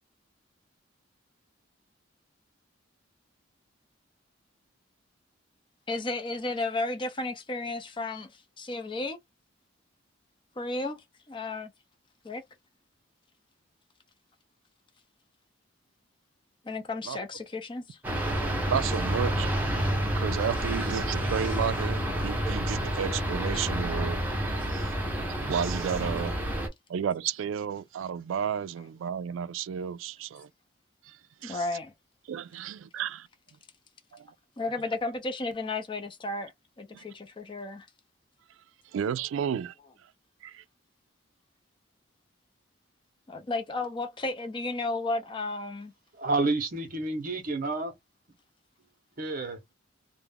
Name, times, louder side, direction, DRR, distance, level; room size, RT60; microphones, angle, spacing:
voice 1, 5.9-8.3 8.6-9.2 10.6-11.0 11.3-11.7 12.2-12.4 16.7-18.0 26.0-26.1 31.4-31.9 34.6-36.5 36.8-37.9 43.3-45.9, left 2 dB, 25° left, 0.6 m, -33 dB
sound 1, 18.0-26.7, right 1 dB, 10° right, 0.7 m, -29 dB
voice 2, 18.6-19.5 20.1-24.2 24.7-26.4 26.9-30.5 31.1-31.2 31.4-31.7 32.3-33.3 34.1-34.3 36.9-37.0 38.9-39.7 40.4-40.6, right 8 dB, 75° right, 0.3 m, -32 dB
voice 3, 46.1-47.9 49.2-49.6, right 3 dB, 45° right, 0.7 m, -29 dB
2.3 x 2.1 x 3.3 m
head